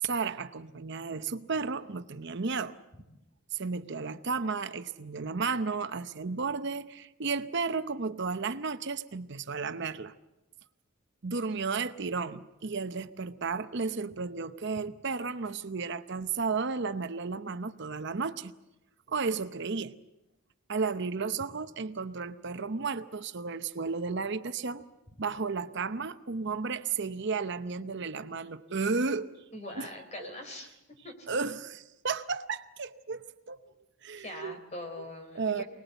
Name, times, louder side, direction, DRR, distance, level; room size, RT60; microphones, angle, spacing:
voice 1, 0.0-2.7 3.5-10.1 11.2-18.5 19.1-20.0 20.7-24.8 25.2-29.3 29.7-29.9 30.2-30.3 31.3-33.6 34.0-34.6 35.3-35.6, right 4 dB, 60° right, 10 dB, 0.8 m, -33 dB
voice 2, 29.5-30.7 31.0-31.3 34.2-35.6, left 1 dB, 35° left, 6 dB, 4.2 m, -42 dB
24.5 x 20.0 x 8.1 m, 0.94 s
head